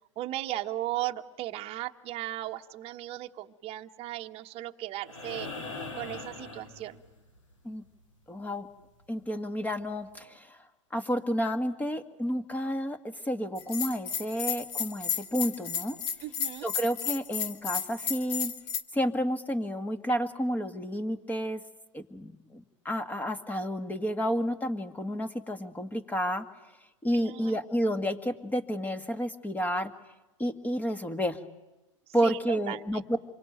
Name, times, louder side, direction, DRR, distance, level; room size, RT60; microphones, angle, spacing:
voice 1, 0.2-5.5 5.9-7.0 16.2-16.7 27.1-27.6 32.2-33.0, right 15 dB, 40° right, 4 dB, 1.2 m, -36 dB
sound 1, 5.0-7.4 9.2-9.3, left 3 dB, 90° left, 3.8 m, -41 dB
voice 2, 8.3-8.7 9.1-10.6 10.9-16.0 16.6-18.5 18.9-21.6 21.9-26.4 27.0-29.9 30.4-31.4 32.1-33.0, equal, 10° left, 10 dB, 1.9 m, -31 dB
Bell, 13.6-18.8, left 7 dB, 55° left, 1.9 m, -33 dB
27.0 x 23.5 x 9.1 m, 1.0 s
hypercardioid pair, 110°, 16 cm